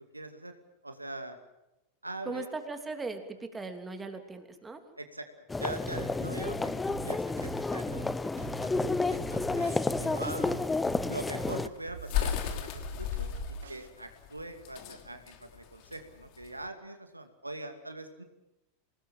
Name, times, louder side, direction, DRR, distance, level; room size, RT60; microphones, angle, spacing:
voice 1, 0.1-0.5 0.8-1.4 2.0-2.5 5.0-5.3 5.6-8.0 8.4-8.8 9.1-9.7 10.0-10.6 11.1-13.3 13.7-18.2, right 1 dB, 85° right, 7 dB, 2.5 m, -42 dB
voice 2, 2.2-4.8, right 3 dB, 15° right, 6 dB, 3.1 m, -38 dB
sound 1, 5.5-11.7, left 3 dB, 10° left, 0.8 m, -31 dB
sound 2, 5.9-13.9, right 6 dB, 65° right, 1.6 m, -45 dB
sound 3, 11.2-16.6, left 10 dB, 45° left, 3.0 m, -35 dB
26.0 x 19.5 x 7.5 m, 0.92 s
figure-of-eight pair, 85°, 0 cm